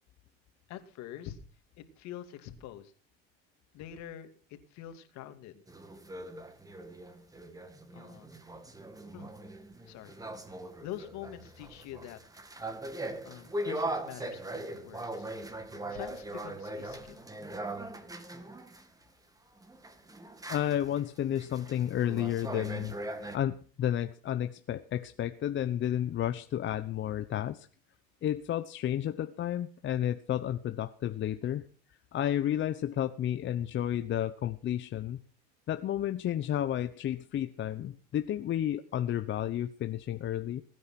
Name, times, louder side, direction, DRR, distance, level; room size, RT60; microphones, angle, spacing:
voice 1, 0.7-1.4 1.8-2.9 3.7-5.6 7.9-8.3 9.1-9.3 9.9-10.2 10.8-12.2 13.2-15.3 15.9-17.3, left 11 dB, 60° left, 7 dB, 2.6 m, -45 dB
sound 1, 5.7-18.9 19.6-23.4, right 1 dB, 10° right, 2.0 m, -40 dB
voice 2, 20.5-22.9 23.3-27.7 28.2-31.6 32.1-35.2 35.7-40.6, left 11 dB, 40° left, 9 dB, 0.9 m, -31 dB
21.0 x 9.6 x 5.9 m, 0.42 s
supercardioid pair, 110°, 31 cm